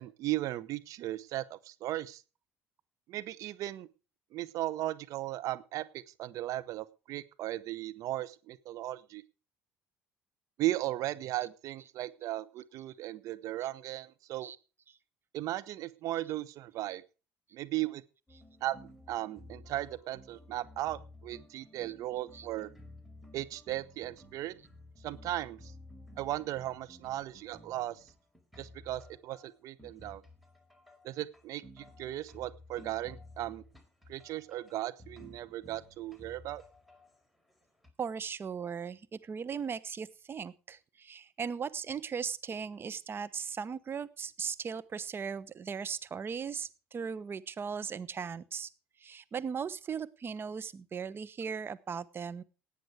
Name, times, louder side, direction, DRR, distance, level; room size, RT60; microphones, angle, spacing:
voice 1, 0.0-2.2 3.1-3.9 4.3-9.2 10.6-14.5 15.3-17.0 17.5-18.0 18.6-18.8 19.1-22.7 23.3-24.5 25.0-25.7 26.2-28.0 28.6-30.2 31.0-33.6 34.1-36.6, right 15 dB, 60° right, 14 dB, 0.9 m, -36 dB
sound 1, 18.3-37.9, left 1 dB, ahead, 4.6 m, -54 dB
voice 2, 38.0-48.7 49.0-52.4, right 6 dB, 35° right, 16 dB, 1.0 m, -38 dB
17.0 x 9.4 x 4.8 m, 0.34 s
hypercardioid pair, 60°, 6 cm